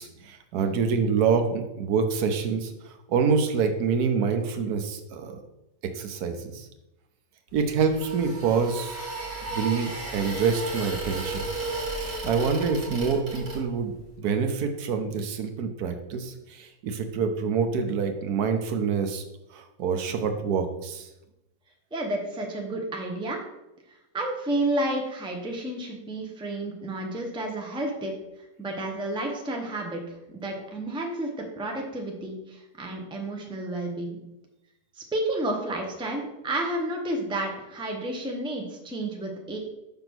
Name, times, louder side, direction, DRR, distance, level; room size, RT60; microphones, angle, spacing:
voice 1, 0.0-5.4 5.8-6.7 7.5-9.0 9.5-11.5 12.2-19.2 19.5-21.1, right 5 dB, 80° right, 7 dB, 1.2 m, -26 dB
sound 1, 7.5-14.0, right 2 dB, 65° right, 2.2 m, -34 dB
voice 2, 21.9-23.4 24.1-28.1 28.6-34.2 34.9-39.6, right 1 dB, 5° right, 1 dB, 0.6 m, -31 dB
5.8 x 3.6 x 6.0 m, 0.94 s
omnidirectional pair, 1.7 m